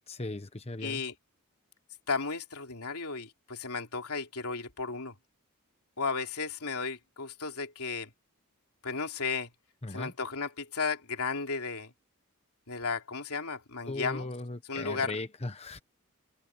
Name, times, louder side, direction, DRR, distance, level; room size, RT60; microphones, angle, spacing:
voice 1, 0.1-1.0 9.8-10.1 13.9-15.8, left 2 dB, 30° left, 1.1 m, -38 dB
voice 2, 0.8-1.1 2.1-5.1 6.0-8.1 8.8-9.5 9.9-11.9 12.7-14.3 14.7-15.1, left 4 dB, 90° left, 3.3 m, -34 dB
open air
head